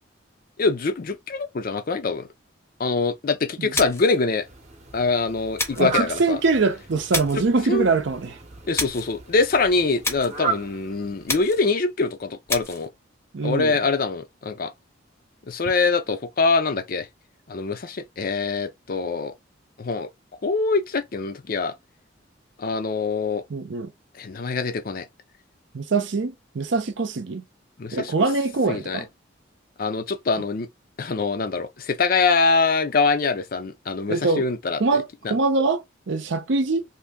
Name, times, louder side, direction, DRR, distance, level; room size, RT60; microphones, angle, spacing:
voice 1, 0.6-2.3 2.8-4.4 4.9-6.4 7.7-7.9 8.7-12.9 13.4-14.7 15.5-17.1 17.5-19.3 19.8-20.1 20.4-21.7 22.6-23.4 24.2-25.0 27.8-28.1 28.7-29.0 29.8-30.7 31.0-35.4, left 4 dB, 50° left, 0.5 m, -24 dB
sound 1, 3.7-4.2 5.6-5.9 7.1-7.5 8.7-9.1 10.0-10.4 11.3-11.7 12.5-12.9, left 3 dB, 15° left, 0.7 m, -29 dB
Fowl, 4.3-11.7, right 5 dB, 35° right, 0.8 m, -35 dB
voice 2, 5.8-8.3 13.3-13.8 23.5-23.9 25.7-27.4 27.9-29.1 34.1-34.4 34.8-36.8, right 3 dB, 65° right, 0.6 m, -23 dB
2.7 x 2.7 x 3.5 m
head